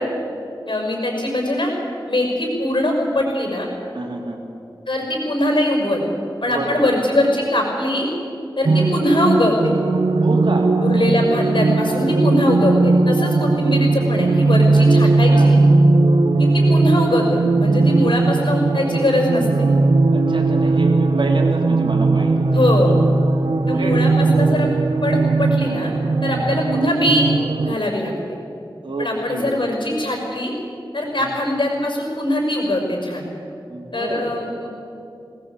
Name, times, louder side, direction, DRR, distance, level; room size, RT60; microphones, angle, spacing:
voice 1, 0.7-1.7 2.1-3.7 4.9-6.0 6.4-8.1 8.6-9.7 10.8-15.6 16.4-19.5 22.5-23.0 23.7-24.7 25.0-25.9 26.2-27.3 27.6-28.1 29.0-30.5 30.9-33.3 33.9-34.7, left 1 dB, 65° left, 1 dB, 5.9 m, -21 dB
voice 2, 3.9-4.4 6.5-6.8 10.2-10.7 12.0-12.1 14.7-14.9 15.3-15.6 16.6-16.7 17.8-18.0 20.1-22.6 23.7-24.0 26.2-26.4 28.8-29.5 31.1-31.3 33.7-34.3, right 2 dB, 70° right, 0 dB, 3.5 m, -29 dB
sound 1, 8.6-27.7, right 3 dB, 85° right, 1.0 m, -17 dB
19.0 x 19.0 x 8.5 m, 2.7 s
wide cardioid pair, 55°, 9 cm